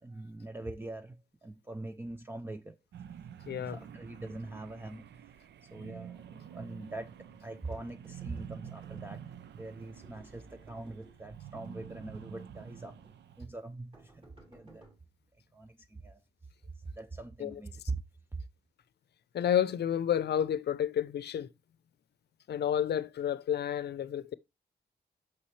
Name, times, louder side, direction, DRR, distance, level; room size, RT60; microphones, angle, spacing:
voice 1, 0.0-2.8 3.6-13.0 13.4-14.9 15.5-16.2 16.7-18.0 18.3-18.4, right 2 dB, 10° right, 0.4 m, -43 dB
sound 1, 2.9-13.4, right 9 dB, 80° right, 0.5 m, -48 dB
voice 2, 3.5-3.8 17.4-17.5 19.3-21.5 22.5-24.3, left 9 dB, 70° left, 0.6 m, -30 dB
sound 2, 7.7-9.4 10.0-11.2 11.6-12.6 13.0-13.2 13.9-15.0, right 2 dB, 30° right, 2.5 m, -60 dB
8.6 x 6.2 x 3.2 m
wide cardioid pair, 150°, 18 cm